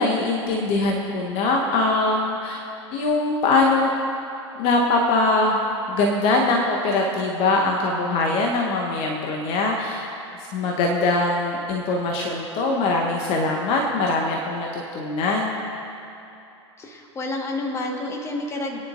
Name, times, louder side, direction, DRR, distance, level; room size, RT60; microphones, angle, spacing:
voice 1, 0.0-2.6 2.9-3.9 4.5-5.6 5.9-10.1 10.5-15.6, left 2 dB, 40° left, 0 dB, 1.0 m, -22 dB
voice 2, 16.8-18.8, left 2 dB, 20° left, 1 dB, 1.4 m, -29 dB
22.0 x 9.7 x 2.6 m, 2.7 s
figure-of-eight pair, 85°, 15 cm